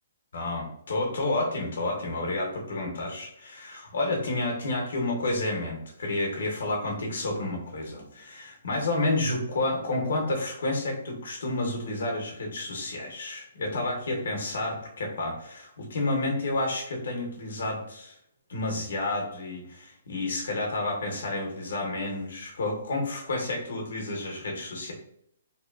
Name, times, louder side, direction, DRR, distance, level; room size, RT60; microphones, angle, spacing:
voice 1, 0.3-18.2 18.5-24.9, left 2 dB, 70° left, 0 dB, 0.7 m, -30 dB
2.8 x 2.2 x 2.2 m, 0.72 s
hypercardioid pair, 170°, 0 cm